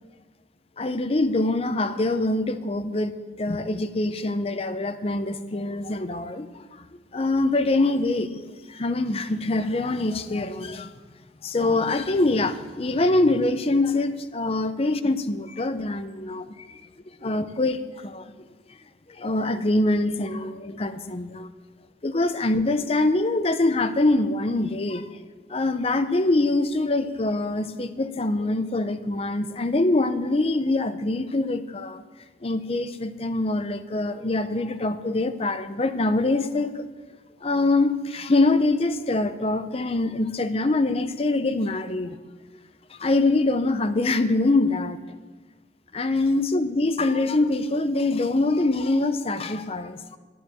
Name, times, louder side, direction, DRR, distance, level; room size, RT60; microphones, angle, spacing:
voice 1, 0.8-6.8 7.1-10.9 11.4-16.8 17.2-18.3 19.2-21.5 22.0-25.1 25.5-32.0 32.4-36.9 37.4-42.2 42.9-45.0 45.9-50.2, left 2 dB, 35° left, 10 dB, 0.6 m, -24 dB
10.5 x 9.3 x 7.1 m, 1.3 s
head